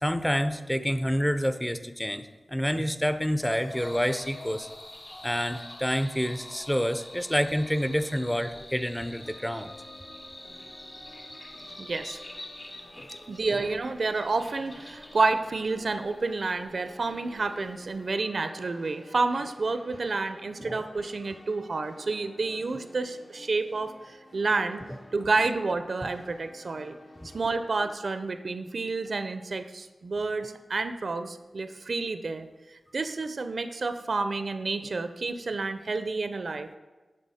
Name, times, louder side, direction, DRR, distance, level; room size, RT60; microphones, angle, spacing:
voice 1, 0.0-4.7 5.2-9.7 13.0-13.6 20.6-20.8 27.2-27.3, equal, 5° left, 10 dB, 0.4 m, -28 dB
Breathing, 3.4-8.4, left 2 dB, 55° left, 0.6 m, -47 dB
sound 1, 3.8-18.2, left 1 dB, 35° left, 1.0 m, -47 dB
sound 2, 9.1-27.9, left 1 dB, 75° left, 1.3 m, -51 dB
voice 2, 11.8-12.2 13.3-24.8 25.1-27.0 27.3-36.8, right 3 dB, 65° right, 10 dB, 0.4 m, -30 dB
9.9 x 3.7 x 4.1 m, 1.2 s
wide cardioid pair, 75°, 0 cm